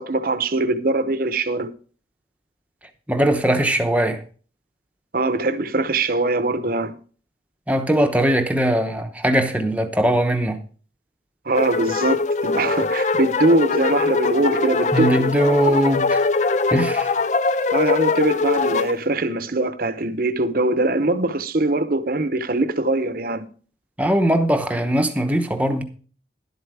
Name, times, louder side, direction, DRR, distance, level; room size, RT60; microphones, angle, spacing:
voice 1, 0.0-1.7 5.1-6.9 11.5-15.3 17.7-23.5, right 2 dB, 50° right, 0.8 m, -22 dB
voice 2, 3.1-4.2 7.7-10.6 14.9-16.2 16.7-17.1 24.0-25.8, right 1 dB, 10° right, 0.9 m, -20 dB
sound 1, 11.5-18.9, left 4 dB, 40° left, 0.4 m, -22 dB
11.5 x 8.0 x 4.9 m
head